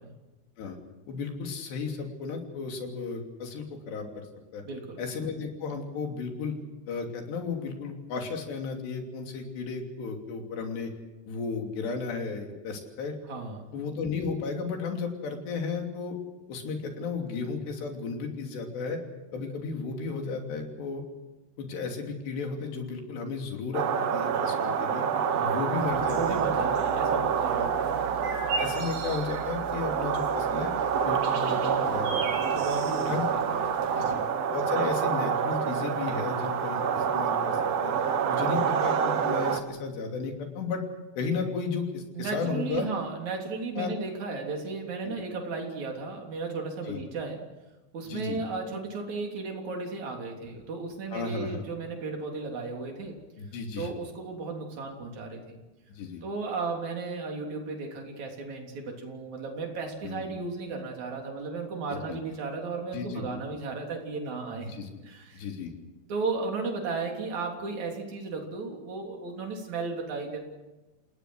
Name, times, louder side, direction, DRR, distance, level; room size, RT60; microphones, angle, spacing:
voice 1, 1.1-4.3 4.5-4.6 5.0-6.6 6.9-10.9 11.3-13.2 13.7-16.2 16.5-19.0 19.3-21.0 21.6-25.1 25.4-26.4 27.6-27.7 28.2-30.7 31.1-32.6 33.0-33.3 34.0-34.2 34.5-37.9 38.3-40.8 41.2-42.9 43.8-43.9 45.1-45.2 46.9-47.0 48.1-48.4 51.1-51.6 53.4-53.9 56.0-56.2 60.0-60.3 61.9-62.2 62.9-63.3 64.6-64.9 65.3-65.7, left 4 dB, 85° left, 3 dB, 5.1 m, -34 dB
voice 2, 4.6-5.0 13.3-13.7 25.3-25.6 26.2-27.9 32.5-34.1 42.1-47.4 47.9-53.2 53.8-55.6 56.2-64.7 65.0-65.4 66.1-70.4, right 4 dB, 45° right, 1 dB, 4.4 m, -35 dB
sound 1, 23.7-39.6, right 7 dB, 65° right, 1.6 m, -27 dB
sound 2, 25.8-34.1, right 4 dB, 85° right, 5.4 m, -40 dB
28.5 x 18.5 x 6.3 m, 1.1 s
omnidirectional pair, 4.8 m